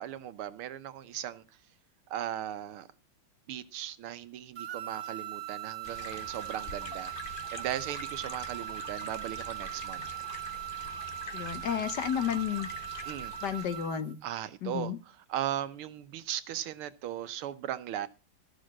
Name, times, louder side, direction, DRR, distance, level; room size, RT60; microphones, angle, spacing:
voice 1, 0.0-1.4 2.1-2.9 3.5-10.1 13.1-13.3 14.2-18.1, right 11 dB, 80° right, 13 dB, 1.7 m, -37 dB
sound 1, 4.6-14.1, right 14 dB, 60° right, 1.7 m, -40 dB
sound 2, 5.8-14.0, left 4 dB, 35° left, 0.8 m, -45 dB
voice 2, 11.3-12.7 13.4-14.2 14.6-15.0, left 9 dB, 60° left, 10 dB, 1.3 m, -32 dB
14.0 x 6.6 x 6.3 m, 0.32 s
omnidirectional pair, 2.4 m